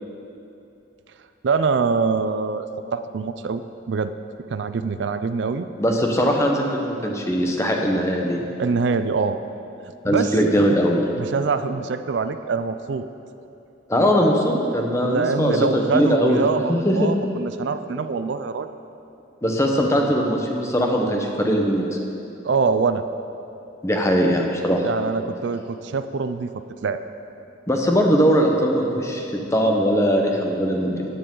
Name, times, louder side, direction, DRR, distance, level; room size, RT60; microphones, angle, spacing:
voice 1, 1.4-2.7 2.9-4.1 4.5-5.7 8.6-9.4 10.1-10.4 11.2-13.1 15.0-18.7 22.4-23.1 24.8-27.0, right 4 dB, 65° right, 10 dB, 0.4 m, -24 dB
voice 2, 5.8-8.4 10.0-11.0 13.9-17.1 19.4-22.0 23.8-24.8 27.7-31.1, equal, 15° left, 1 dB, 1.0 m, -20 dB
14.5 x 10.0 x 3.8 m, 2.8 s
head